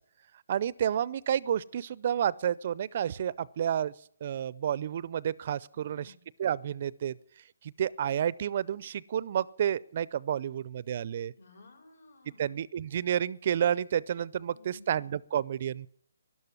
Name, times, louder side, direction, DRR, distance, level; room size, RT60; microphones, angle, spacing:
voice 1, 0.5-3.9 4.2-6.1 6.4-7.1 7.6-11.3 12.4-15.9, right 9 dB, 45° right, 22 dB, 0.5 m, -30 dB
voice 2, 5.7-6.3 11.4-12.6 14.5-15.0, left 2 dB, 65° left, 4 dB, 6.5 m, -54 dB
12.5 x 12.0 x 9.7 m, 0.65 s
hypercardioid pair, 155°, 0 cm